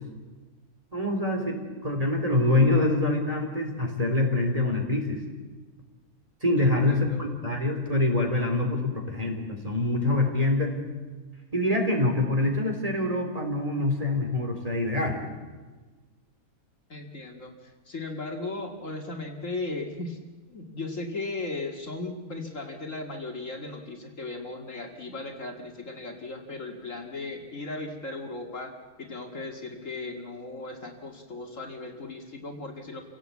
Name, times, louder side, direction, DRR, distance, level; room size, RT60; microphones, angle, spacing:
voice 1, 0.9-5.2 6.4-10.7 11.5-15.2, left 2 dB, 25° right, 2 dB, 3.5 m, -25 dB
voice 2, 6.6-7.2 16.9-20.2 20.5-28.7 29.0-33.0, left 2 dB, 55° left, 3 dB, 2.4 m, -37 dB
28.5 x 17.5 x 8.4 m, 1.3 s
omnidirectional pair, 1.6 m